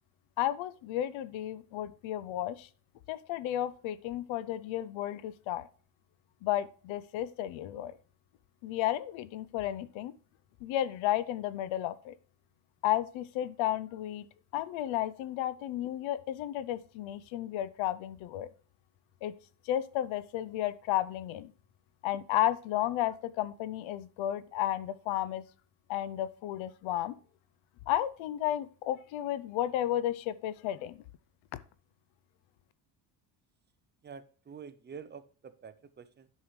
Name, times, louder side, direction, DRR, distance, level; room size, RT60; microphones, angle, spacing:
voice 1, 0.4-2.7 3.1-5.7 6.4-7.9 8.6-10.1 10.6-12.1 12.8-14.3 14.5-18.5 19.2-19.3 19.7-21.5 22.0-25.4 25.9-27.2 27.9-31.0, left 12 dB, 70° left, 16 dB, 0.6 m, -33 dB
voice 2, 34.0-36.3, right 6 dB, 20° right, 12 dB, 0.5 m, -47 dB
9.7 x 5.6 x 3.1 m, 0.40 s
cardioid pair, 105°, 50 cm